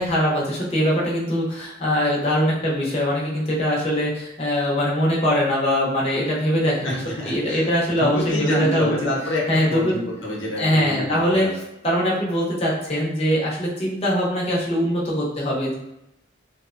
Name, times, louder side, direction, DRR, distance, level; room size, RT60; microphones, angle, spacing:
voice 1, 0.0-7.0 7.2-8.9 9.5-10.0 10.6-11.5 11.8-15.7, equal, 30° left, -5 dB, 0.6 m, -22 dB
voice 2, 6.8-11.5, left 1 dB, 75° left, -3 dB, 0.8 m, -28 dB
2.9 x 2.1 x 2.4 m, 0.86 s
head